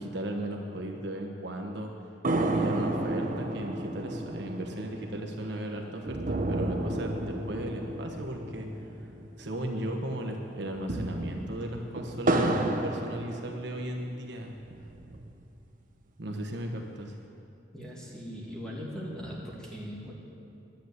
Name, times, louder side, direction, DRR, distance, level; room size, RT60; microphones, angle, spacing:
voice 1, 0.0-1.9 2.5-8.7 9.4-14.5 16.2-17.1, right 1 dB, 65° right, 2 dB, 1.2 m, -36 dB
sound 1, 2.2-9.8 10.1-10.2 10.7-14.0 14.5-15.5, right 1 dB, 45° right, 0.9 m, -32 dB
voice 2, 17.7-20.1, equal, 5° left, -5 dB, 2.4 m, -39 dB
10.5 x 10.5 x 8.2 m, 2.6 s
head